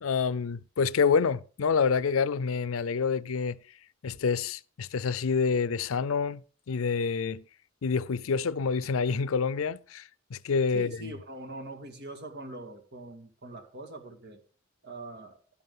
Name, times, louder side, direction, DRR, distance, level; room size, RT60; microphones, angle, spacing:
voice 1, 0.0-3.6 4.0-6.4 6.7-7.4 7.8-11.1, left 5 dB, 85° left, 0.5 m, -27 dB
voice 2, 10.7-14.4 14.8-15.4, right 2 dB, 55° right, 1.9 m, -42 dB
11.5 x 11.0 x 3.7 m
head